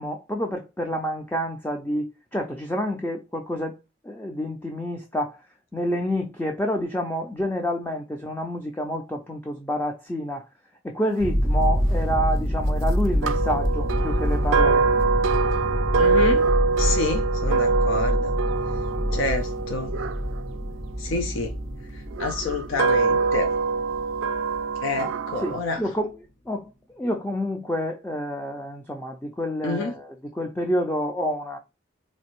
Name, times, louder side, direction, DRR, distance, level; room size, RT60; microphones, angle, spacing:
voice 1, 0.0-3.8 4.0-5.5 5.7-10.5 10.8-14.9 25.0-25.1 25.4-31.6, equal, 10° left, 0.4 m, -28 dB
sound 1, 11.2-25.3, equal, 45° left, 1.1 m, -26 dB
sound 2, 13.2-21.4 22.1-25.6, right 4 dB, 80° right, 0.4 m, -24 dB
voice 2, 16.0-16.4 16.8-18.3 19.1-19.9 21.0-21.5 21.9-23.5 24.8-25.8 29.6-29.9, left 3 dB, 75° left, 0.5 m, -28 dB
4.1 x 2.6 x 2.9 m
head